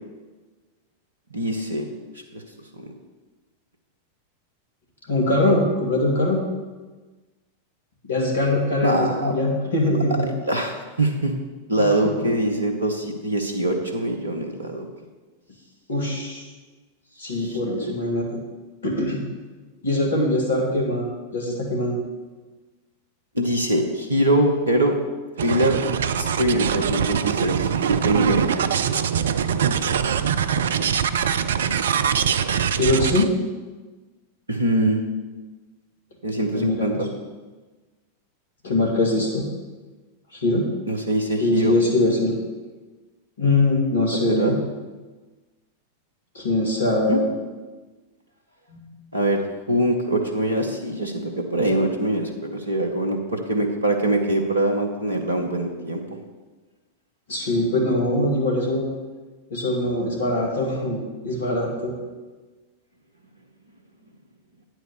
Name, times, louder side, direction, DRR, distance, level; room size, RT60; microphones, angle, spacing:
voice 1, 1.3-1.9 2.3-2.4 2.8-2.9 8.8-9.3 10.2-11.3 11.7-14.9 17.2-17.9 23.3-25.0 25.4-25.8 26.2-28.5 28.8-29.1 29.6-29.9 34.5-35.0 36.2-37.1 40.9-41.7 44.4-44.5 47.1-47.2 49.1-56.2, right 1 dB, 80° right, 3 dB, 0.9 m, -23 dB
voice 2, 5.1-6.4 8.1-10.3 11.8-12.0 15.9-16.4 17.2-18.4 18.8-19.2 19.8-22.0 32.7-33.3 36.5-37.1 38.6-39.5 40.3-40.7 41.4-42.3 43.4-44.6 46.3-47.3 48.7-48.9 57.3-58.9 59.5-61.9, left 2 dB, 65° left, 0 dB, 2.0 m, -22 dB
sound 1, 25.4-33.3, right 8 dB, 65° right, 0.4 m, -23 dB
9.2 x 4.5 x 6.7 m, 1.3 s
figure-of-eight pair, 90°, 0 cm